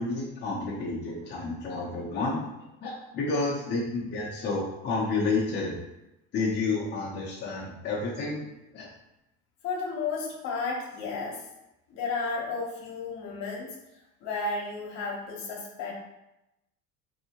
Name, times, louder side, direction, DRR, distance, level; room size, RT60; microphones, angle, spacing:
voice 1, 0.0-2.5 2.8-5.8 6.3-8.5 8.7-8.9, left 3 dB, 35° left, -5 dB, 0.7 m, -30 dB
voice 2, 9.6-11.4 11.9-13.7 14.2-15.9, left 4 dB, 60° left, -1 dB, 1.0 m, -33 dB
3.3 x 2.8 x 2.9 m, 0.92 s
cardioid pair, 125°, 30 cm